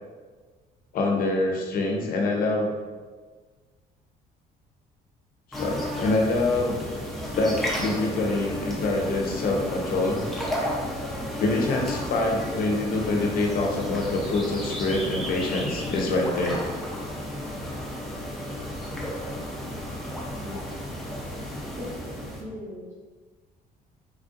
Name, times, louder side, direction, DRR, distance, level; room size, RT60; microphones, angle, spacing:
voice 1, 0.9-2.7 5.5-6.8 7.3-10.2 11.4-16.6, left 2 dB, 60° left, 1 dB, 0.6 m, -25 dB
sound 1, 5.5-22.4, left 1 dB, ahead, 0.6 m, -33 dB
voice 2, 21.8-22.9, left 1 dB, 45° right, -6 dB, 0.9 m, -39 dB
3.3 x 2.5 x 2.5 m, 1.4 s
cardioid pair, 110°, 17 cm